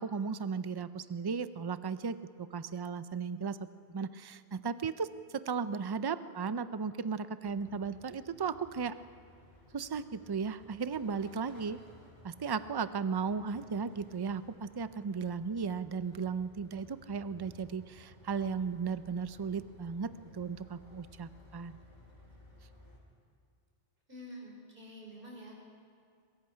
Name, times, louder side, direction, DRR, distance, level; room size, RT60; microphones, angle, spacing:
voice 1, 0.0-3.6 3.9-8.9 9.7-11.8 12.2-21.8, right 5 dB, 30° right, 13 dB, 0.4 m, -36 dB
sound 1, 7.4-23.0, left 1 dB, 45° left, 4.0 m, -58 dB
voice 2, 24.1-25.6, equal, 55° right, -1 dB, 5.2 m, -48 dB
22.5 x 22.0 x 5.7 m, 2.3 s
omnidirectional pair, 1.1 m